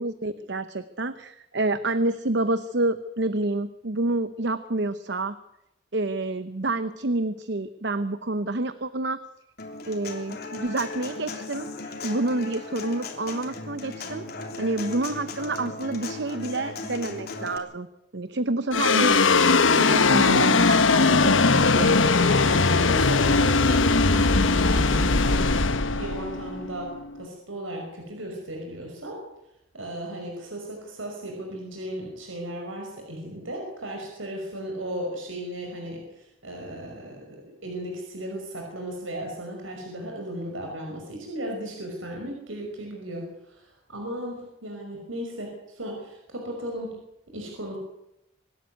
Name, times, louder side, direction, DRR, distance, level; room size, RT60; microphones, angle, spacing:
voice 1, 0.0-5.4 5.9-9.2 9.9-11.7 12.0-14.2 14.6-17.9 18.1-19.2 19.7-21.9, right 2 dB, 60° right, 12 dB, 0.8 m, -28 dB
Human voice / Acoustic guitar, 9.6-17.6, left 3 dB, 50° left, 3.2 m, -37 dB
sound 1, 18.7-27.2, left 3 dB, 80° left, 1.2 m, -20 dB
voice 2, 21.8-26.9 27.2-29.2 29.7-47.0 47.3-47.8, right 1 dB, 90° right, 1 dB, 5.6 m, -36 dB
25.0 x 12.5 x 9.5 m, 0.84 s
head